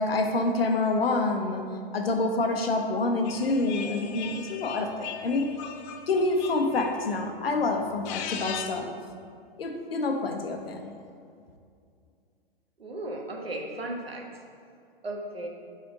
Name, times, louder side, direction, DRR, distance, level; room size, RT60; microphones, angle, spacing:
voice 1, 0.0-5.6 6.1-8.9 9.6-10.9, left 2 dB, 80° left, 4 dB, 1.0 m, -27 dB
sound 1, 3.2-7.3 7.9-8.9, left 8 dB, 30° left, 0.4 m, -39 dB
voice 2, 12.8-14.2 15.0-15.5, right 1 dB, 90° right, 0 dB, 1.3 m, -35 dB
9.3 x 4.3 x 3.8 m, 2.3 s
hypercardioid pair, 115°, 29 cm